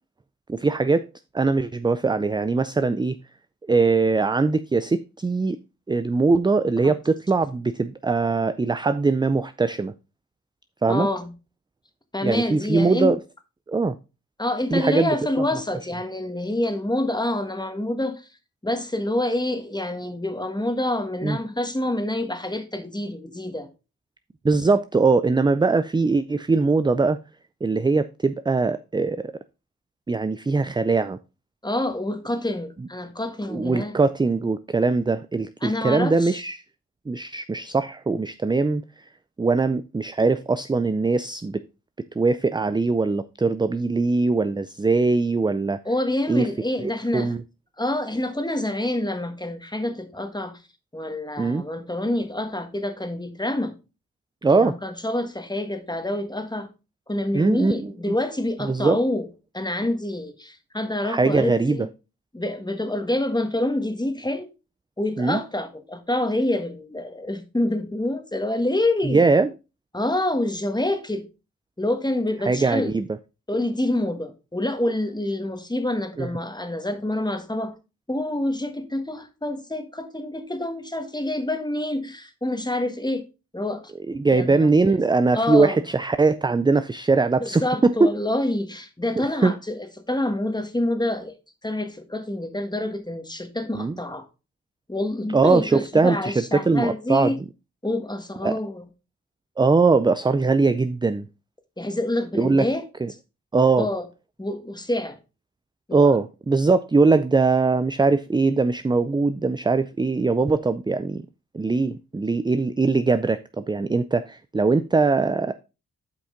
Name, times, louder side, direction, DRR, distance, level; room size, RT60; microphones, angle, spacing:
voice 1, 0.5-1.1 1.3-3.2 3.7-5.6 5.9-9.9 10.8-11.1 12.2-13.2 13.7-14.0 14.7-15.2 21.2-21.4 24.4-27.2 27.6-29.3 30.1-31.2 33.5-36.6 37.1-38.8 39.4-41.6 42.2-45.8 46.3-46.5 46.8-47.4 51.4-51.6 54.4-54.7 57.3-58.1 58.6-59.0 61.0-61.9 65.2-65.4 69.0-69.5 72.5-73.1 76.2-76.3 84.1-88.1 89.2-89.5 93.7-93.9 95.3-97.3 98.4-98.6 99.6-101.3 102.3-102.7 103.0-103.1 103.5-103.9 105.9-111.2 111.5-115.6, right 3 dB, 15° right, 0.4 m, -21 dB
voice 2, 10.9-11.3 12.1-13.1 14.4-18.3 18.6-23.7 31.6-33.9 35.6-36.4 45.8-47.3 47.8-50.6 50.9-53.7 54.5-56.7 57.1-59.3 59.5-61.8 62.3-64.5 65.0-69.2 69.9-71.3 71.8-72.9 73.5-77.7 78.1-83.2 83.5-83.8 84.3-84.6 84.9-85.0 85.3-85.8 87.4-89.8 90.1-91.3 91.6-94.2 94.9-97.4 97.8-98.8 101.8-102.9 103.8-104.0 104.4-105.2 105.9-106.1, left 1 dB, 10° left, 1.5 m, -27 dB
8.5 x 5.1 x 3.7 m
cardioid pair, 60°, 36 cm